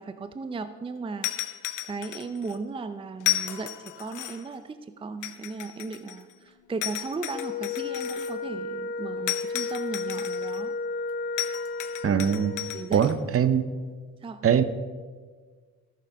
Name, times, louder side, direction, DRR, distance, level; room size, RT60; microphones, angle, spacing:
voice 1, 0.0-1.5 1.8-10.7 12.7-13.1 14.2-14.4, right 4 dB, 20° right, 11 dB, 0.5 m, -36 dB
sound 1, 1.2-2.6 3.2-4.5 5.2-6.3 6.8-8.3 9.3-10.6 11.4-13.1, left 15 dB, 85° left, 0.8 m, -33 dB
Wind instrument woodwind instrument, 7.3-12.9, left 4 dB, 30° left, 1.3 m, -33 dB
voice 2, 12.0-12.5 12.9-13.6 14.4-14.6, right 8 dB, 50° right, 12 dB, 0.8 m, -22 dB
13.5 x 6.8 x 5.1 m, 1.5 s
cardioid pair, 90°, 30 cm